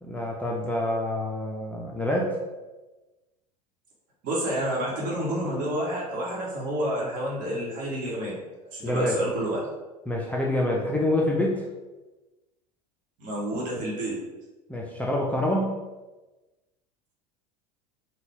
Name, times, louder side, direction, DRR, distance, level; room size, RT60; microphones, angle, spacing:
voice 1, 0.0-2.4 8.8-9.2 10.1-11.6 14.7-15.8, left 1 dB, 5° left, -3 dB, 0.4 m, -26 dB
voice 2, 4.2-8.4 8.7-9.6 13.2-14.2, right 1 dB, 40° right, -4 dB, 1.2 m, -29 dB
3.8 x 2.3 x 3.5 m, 1.1 s
figure-of-eight pair, 80°, 21 cm